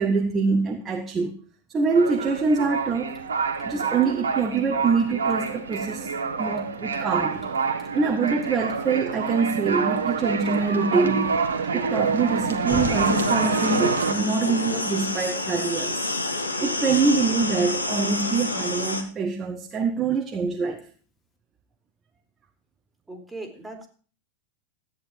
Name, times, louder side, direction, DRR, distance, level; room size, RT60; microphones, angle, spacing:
voice 1, 0.0-1.4 1.7-3.2 3.6-6.1 6.4-7.5 7.9-11.4 11.7-16.1 16.6-20.8, right 4 dB, 20° right, 3 dB, 1.3 m, -24 dB
sound 1, 1.9-14.1, right 5 dB, 70° right, 1.5 m, -27 dB
Drip, 3.1-21.4, left 5 dB, 25° left, 3.6 m, -47 dB
sound 2, 12.7-19.0, left 2 dB, 80° left, 1.6 m, -28 dB
voice 2, 23.1-23.9, right 2 dB, 5° right, 4 dB, 3.0 m, -38 dB
13.5 x 9.6 x 4.5 m, 0.40 s
figure-of-eight pair, 90°, 0 cm